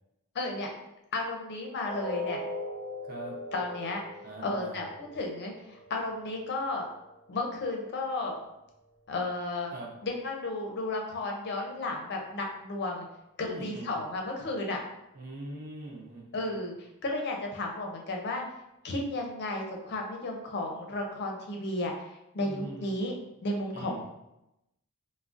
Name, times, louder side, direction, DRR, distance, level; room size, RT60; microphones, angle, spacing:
voice 1, 0.3-0.7 1.1-2.4 3.5-4.0 4.4-6.9 7.3-8.4 9.1-9.7 10.0-13.1 13.4-14.8 16.3-16.7 17.0-18.4 18.8-21.9 22.3-23.1 23.4-24.0, left 2 dB, 50° left, 1 dB, 0.5 m, -33 dB
sound 1, 1.8-7.8 8.2-8.4 8.9-9.0, left 1 dB, 20° left, 0.8 m, -41 dB
voice 2, 3.0-3.4 4.2-4.9 9.7-9.9 13.4-14.0 15.1-16.5 22.4-23.0 23.7-24.0, right 1 dB, 40° right, -1 dB, 0.6 m, -42 dB
3.6 x 2.0 x 2.4 m, 0.88 s
head